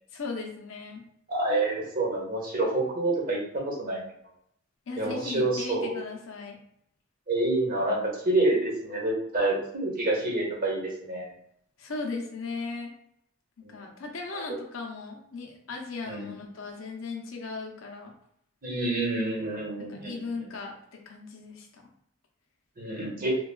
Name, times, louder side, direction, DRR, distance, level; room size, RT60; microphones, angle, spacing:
voice 1, 0.1-1.0 4.9-6.6 11.8-12.9 13.6-18.1 19.9-21.9, left 4 dB, 85° left, 1 dB, 0.6 m, -37 dB
voice 2, 1.3-4.0 5.0-5.9 7.3-11.3 14.3-14.6 16.1-16.3 18.6-20.5 22.8-23.4, right 2 dB, 45° right, -2 dB, 0.9 m, -28 dB
3.2 x 2.2 x 2.2 m, 0.72 s
head